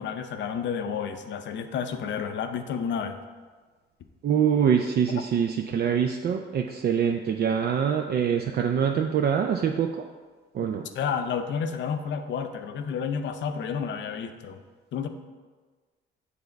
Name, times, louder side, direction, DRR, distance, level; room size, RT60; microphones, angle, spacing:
voice 1, 0.0-3.2 10.9-14.6 14.9-15.1, left 7 dB, 65° left, 8 dB, 0.6 m, -30 dB
voice 2, 4.2-10.0 10.5-10.9, right 7 dB, 55° right, 3 dB, 0.4 m, -24 dB
6.9 x 3.4 x 5.2 m, 1.4 s
cardioid pair, 90°, 20 cm